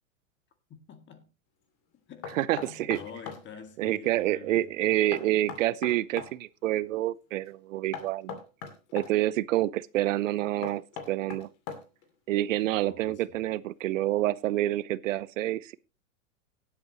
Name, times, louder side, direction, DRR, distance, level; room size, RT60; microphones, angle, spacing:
voice 1, 0.7-1.3 2.1-5.0 12.7-13.5, left 6 dB, 25° left, 2.0 m, -48 dB
Knock, 2.2-3.4 5.1-6.3 7.9-9.1 10.6-12.1, left 7 dB, 55° left, 2.7 m, -40 dB
voice 2, 2.4-3.0 3.8-8.4 8.9-11.5 12.3-15.8, right 15 dB, 70° right, 0.7 m, -28 dB
17.5 x 8.6 x 3.0 m
hypercardioid pair, 115°, 41 cm